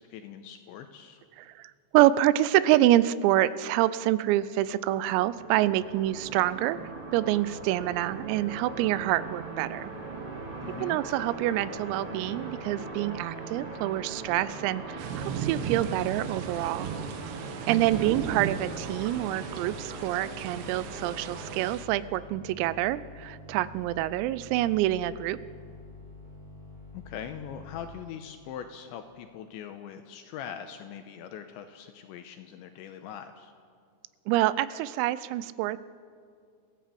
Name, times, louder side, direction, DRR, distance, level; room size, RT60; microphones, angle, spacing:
voice 1, 0.0-1.2 10.6-11.0 17.9-18.1 26.9-33.5, left 8 dB, 80° left, 7 dB, 2.7 m, -42 dB
voice 2, 1.4-9.9 10.8-16.9 17.7-25.4 34.3-35.8, right 14 dB, 85° right, 16 dB, 3.4 m, -26 dB
sound 1, 4.5-21.7, right 3 dB, 35° right, 2.4 m, -41 dB
sound 2, 15.0-21.8, right 7 dB, 70° right, 3.0 m, -36 dB
sound 3, 17.8-28.0, left 2 dB, 55° right, 4.9 m, -48 dB
27.5 x 16.0 x 7.6 m, 2.3 s
omnidirectional pair, 6.0 m